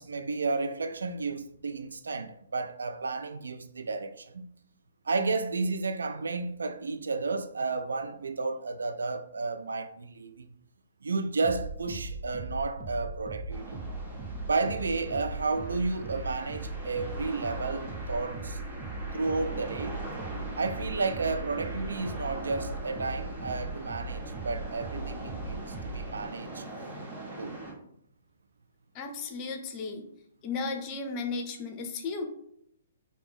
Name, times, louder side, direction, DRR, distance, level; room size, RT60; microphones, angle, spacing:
voice 1, 0.0-4.5 5.1-10.5 11.0-13.8 14.5-18.6 19.1-20.0 20.6-26.6 27.4-27.6, right 3 dB, 65° right, 0.3 m, -32 dB
sound 1, 11.4-26.2, right 2 dB, 20° right, 0.7 m, -39 dB
sound 2, 13.5-27.7, right 2 dB, 40° right, 1.8 m, -42 dB
voice 2, 28.9-30.1 30.4-32.2, left 4 dB, 30° left, 0.7 m, -34 dB
4.8 x 2.8 x 3.4 m
figure-of-eight pair, 125°, 0 cm